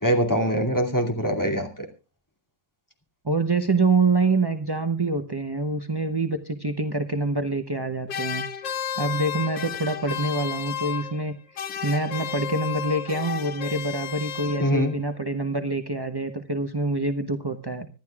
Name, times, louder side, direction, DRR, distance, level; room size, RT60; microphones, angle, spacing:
voice 1, 0.0-1.9 14.6-14.9, equal, 10° left, 2 dB, 2.5 m, -23 dB
voice 2, 3.2-17.9, right 3 dB, 30° right, 7 dB, 0.4 m, -26 dB
sound 1, 8.1-11.3 11.6-15.0, left 8 dB, 85° left, 1.8 m, -33 dB
25.5 x 11.5 x 2.4 m, 0.33 s
omnidirectional pair, 2.0 m